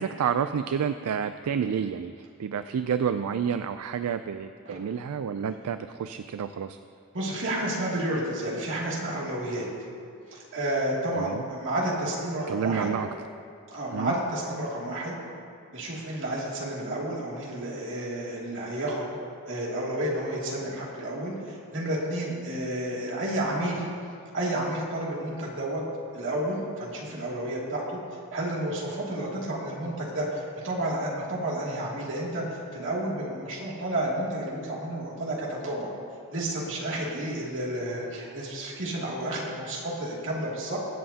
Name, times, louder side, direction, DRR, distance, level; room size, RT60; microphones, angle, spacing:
voice 1, 0.0-6.8 11.2-11.4 12.5-13.1 13.9-14.1, right 7 dB, 75° right, 10 dB, 0.4 m, -29 dB
voice 2, 7.1-9.6 10.3-12.9 13.7-15.1 15.7-19.1 19.5-23.9 24.3-25.8 26.1-28.0 28.3-35.9 36.3-40.8, right 1 dB, 60° right, -4 dB, 2.5 m, -31 dB
23.0 x 7.8 x 2.8 m, 2.4 s
head